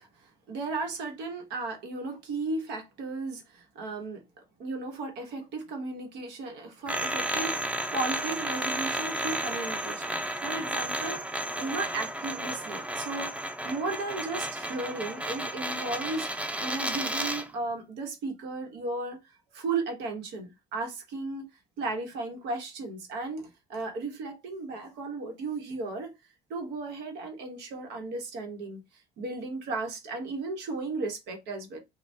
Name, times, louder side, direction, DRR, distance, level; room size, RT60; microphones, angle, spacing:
voice 1, 0.0-4.2 4.6-19.2 19.5-21.5 21.8-26.1 26.5-31.8, right 3 dB, 90° right, 1.0 m, -35 dB
sound 1, 6.9-17.5, right 1 dB, 5° right, 0.5 m, -32 dB
3.3 x 2.2 x 2.6 m
cardioid pair, 110°, 17 cm